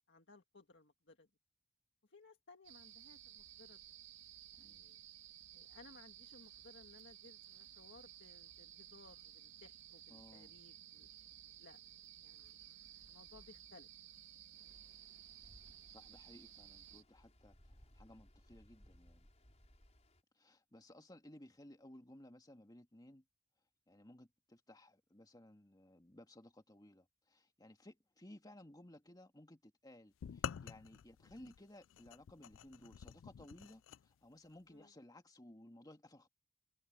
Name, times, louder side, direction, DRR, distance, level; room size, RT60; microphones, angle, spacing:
voice 1, 0.1-1.3 2.0-3.8 4.5-5.0 5.5-11.1 11.6-11.8 12.2-12.8 13.1-13.9 15.9-16.0 34.7-34.9, left 3 dB, 65° left, 1.9 m, -62 dB
sound 1, 2.6-17.0, right 11 dB, 80° right, 2.0 m, -57 dB
voice 2, 10.1-10.6 15.9-19.3 20.4-23.2 23.9-36.3, left 1 dB, 20° left, 2.0 m, -59 dB
Stream, 14.5-20.2, equal, 35° left, 5.2 m, -65 dB
sound 2, 30.2-34.0, left 8 dB, 90° left, 0.4 m, -47 dB
head